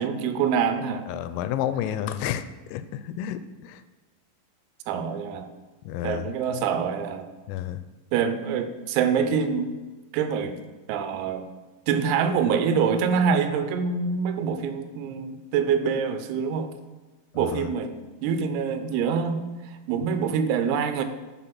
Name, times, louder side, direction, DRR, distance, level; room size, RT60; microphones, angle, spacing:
voice 1, 0.0-1.1 4.9-5.5 6.0-7.3 8.1-9.7 10.1-10.6 10.9-11.5 11.9-16.7 17.4-21.0, right 6 dB, 85° right, 8 dB, 3.6 m, -25 dB
voice 2, 1.1-3.8 5.9-6.3 7.5-7.8 17.3-17.7, left 10 dB, 85° left, 11 dB, 3.2 m, -31 dB
13.0 x 6.2 x 6.0 m, 1.2 s
omnidirectional pair, 6.0 m